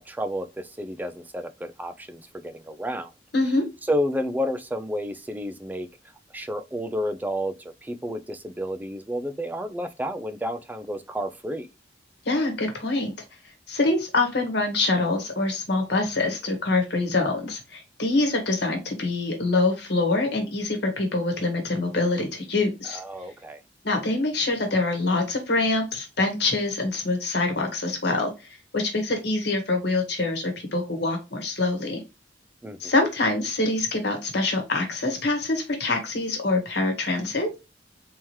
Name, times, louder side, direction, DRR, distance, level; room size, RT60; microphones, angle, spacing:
voice 1, 0.0-3.1 3.9-5.9 6.3-11.7 22.8-23.6 32.6-32.9, equal, 10° right, 0.3 m, -31 dB
voice 2, 3.3-3.6 12.2-13.1 13.7-23.0 23.8-28.3 28.7-32.0 32.8-37.6, left 2 dB, 60° left, 1.2 m, -25 dB
3.5 x 2.9 x 3.1 m
head